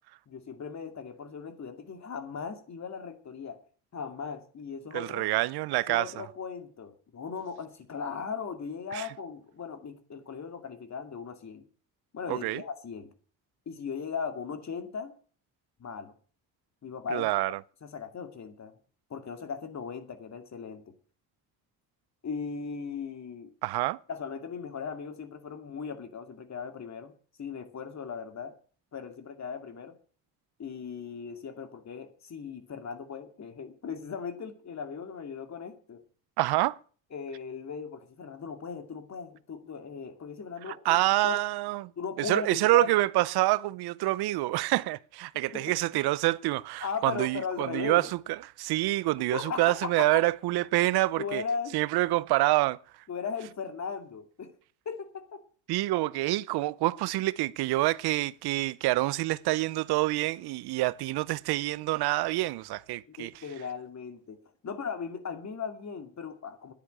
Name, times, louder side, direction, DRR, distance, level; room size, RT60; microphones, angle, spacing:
voice 1, 0.3-3.6 3.9-5.3 5.8-11.6 12.1-13.1 13.7-15.1 15.8-16.1 16.8-17.3 17.8-18.7 19.1-20.8 22.2-23.5 24.1-27.1 27.4-28.5 28.9-30.0 30.6-36.0 37.1-41.4 42.0-42.9 45.5-45.7 46.8-48.1 49.3-50.3 51.2-51.8 53.1-54.5 54.9-55.4 63.1-66.7, left 6 dB, 45° left, 2.5 m, -38 dB
voice 2, 4.9-6.1 8.9-9.1 12.3-12.6 17.1-17.6 23.6-24.0 36.4-36.8 40.7-41.9 42.2-48.1 48.6-51.4 51.7-52.8 55.7-63.3, right 18 dB, 80° right, 0.6 m, -27 dB
10.5 x 10.0 x 8.6 m
cardioid pair, 90°, 38 cm